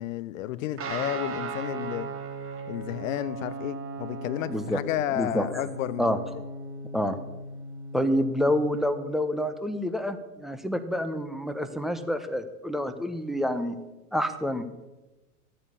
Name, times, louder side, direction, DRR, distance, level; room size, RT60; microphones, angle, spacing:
voice 1, 0.0-2.1 2.7-6.2, left 13 dB, 60° left, 16 dB, 0.7 m, -32 dB
Guitar, 0.8-8.8, right 3 dB, 30° right, 2.7 m, -37 dB
voice 2, 4.5-4.8 5.1-5.5 6.0-6.2 6.9-7.2 7.9-13.8 14.1-14.6, equal, ahead, 9 dB, 1.0 m, -28 dB
13.5 x 8.9 x 7.1 m, 1.1 s
hypercardioid pair, 90°, 46 cm